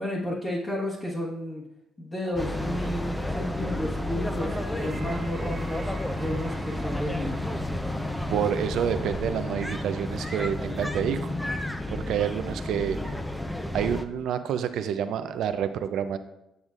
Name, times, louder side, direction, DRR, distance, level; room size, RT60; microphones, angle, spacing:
voice 1, 0.0-1.6 2.0-7.4, left 1 dB, 30° left, -7 dB, 1.4 m, -32 dB
sound 1, 2.2-10.6, right 3 dB, 40° right, 1.1 m, -46 dB
sound 2, 2.4-14.0, left 1 dB, 5° left, 0.6 m, -31 dB
voice 2, 8.3-11.5 11.9-13.2 13.7-16.2, right 8 dB, 75° right, 10 dB, 0.5 m, -28 dB
8.0 x 7.1 x 2.5 m, 0.89 s
cardioid pair, 85°, 0 cm